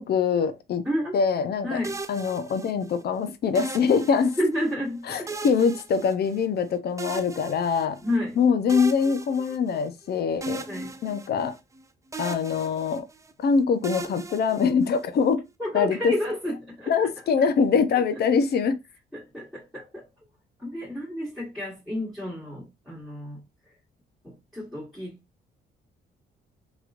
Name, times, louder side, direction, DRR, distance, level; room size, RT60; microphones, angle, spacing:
voice 1, 0.0-0.8 1.1-1.8 2.1-4.3 5.1-8.0 8.4-10.7 11.0-11.5 12.2-13.1 13.4-15.4 15.7-16.1 16.9-18.8, left 6 dB, 55° left, 0.6 m, -23 dB
voice 2, 0.8-1.2 1.6-2.0 4.2-5.4 8.0-8.4 10.5-10.9 15.6-17.1 17.4-17.5 19.1-20.1 20.6-23.4 24.2-25.2, left 1 dB, ahead, 1.4 m, -31 dB
sound 1, 1.8-3.0 3.5-4.7 5.3-6.6 7.0-8.2 8.7-10.0 10.4-11.8 12.1-13.3 13.8-15.2, right 2 dB, 15° right, 0.3 m, -37 dB
3.0 x 2.9 x 2.4 m
cardioid pair, 90°, 20 cm